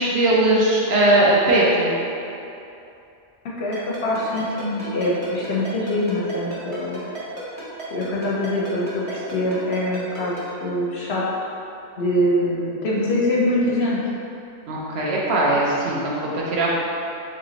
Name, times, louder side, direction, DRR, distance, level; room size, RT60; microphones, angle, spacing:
voice 1, 0.0-1.9 14.7-16.7, right 1 dB, 65° right, -5 dB, 0.8 m, -19 dB
voice 2, 3.6-7.0 7.9-11.2 12.0-14.0, left 1 dB, 65° left, -5 dB, 0.8 m, -24 dB
Ringtone, 3.7-10.4, right 2 dB, 30° right, 0.9 m, -34 dB
3.3 x 2.9 x 3.8 m, 2.7 s
omnidirectional pair, 1.3 m